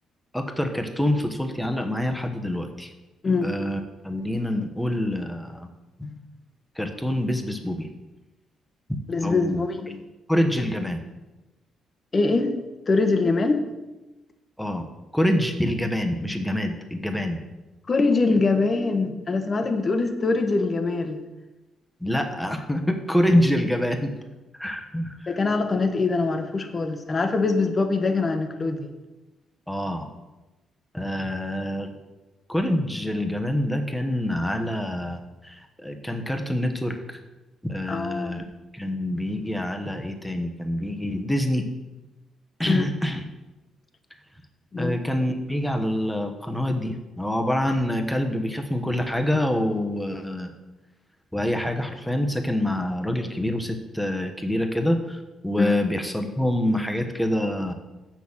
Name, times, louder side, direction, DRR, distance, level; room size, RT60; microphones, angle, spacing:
voice 1, 0.3-2.9 3.4-5.7 6.8-7.9 8.9-9.6 10.3-11.0 14.6-14.8 15.1-17.4 22.0-24.1 24.5-25.4 29.7-30.1 30.9-31.9 32.5-37.2 37.6-38.5 38.7-41.6 42.6-43.2 44.8-50.5 51.3-57.7, left 1 dB, 5° left, 5 dB, 1.1 m, -26 dB
voice 2, 9.1-10.0 12.1-12.5 12.9-13.7 17.9-21.2 25.3-28.9 37.9-38.4 42.7-42.8 44.7-44.9 55.6-55.8, left 3 dB, 35° left, 7 dB, 1.2 m, -23 dB
7.1 x 6.3 x 7.2 m, 1.1 s
cardioid pair, 90°, 0 cm